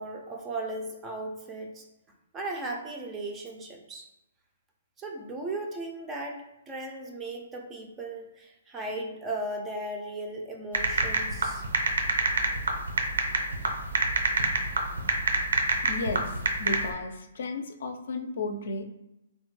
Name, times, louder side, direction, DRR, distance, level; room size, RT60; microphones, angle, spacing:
voice 1, 0.0-1.9 2.3-4.1 5.0-11.7, right 2 dB, 15° right, 1 dB, 0.3 m, -36 dB
sound 1, 10.7-16.9, right 3 dB, 85° right, 0.6 m, -26 dB
voice 2, 15.8-18.8, left 3 dB, 60° left, 5 dB, 0.4 m, -34 dB
3.2 x 2.1 x 3.1 m, 0.90 s
hypercardioid pair, 165°, 0 cm